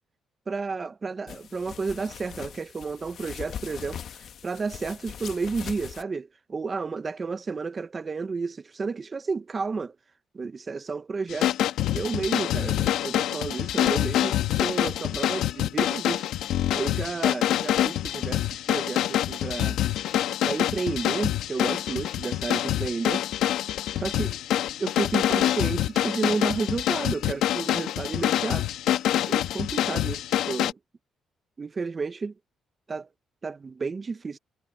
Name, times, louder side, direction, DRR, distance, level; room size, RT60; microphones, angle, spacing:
voice 1, 0.5-9.9 10.3-11.6 11.9-16.3 16.7-19.8 20.4-23.3 23.9-24.4 24.8-28.7 29.3-30.8 31.6-32.3 32.9-33.1 33.4-34.4, right 4 dB, 35° right, 0.8 m, -32 dB
sound 1, 1.3-6.0, left 8 dB, 65° left, 1.4 m, -41 dB
sound 2, 11.3-30.7, left 12 dB, 85° left, 1.3 m, -26 dB
cardioid pair, 90°, 0 cm